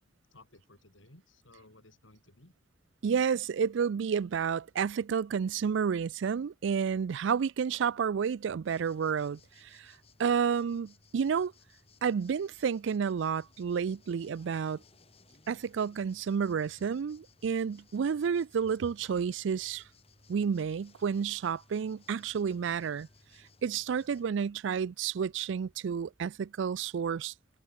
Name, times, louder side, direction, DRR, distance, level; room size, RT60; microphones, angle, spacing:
voice 1, 0.3-2.5, left 2 dB, 85° left, 4.4 m, -58 dB
voice 2, 3.0-9.9 10.2-11.5 12.0-14.8 15.5-19.8 20.3-23.1 23.6-27.3, right 6 dB, 70° right, 0.4 m, -30 dB
sound 1, 8.6-24.3, left 3 dB, 30° left, 3.7 m, -62 dB
head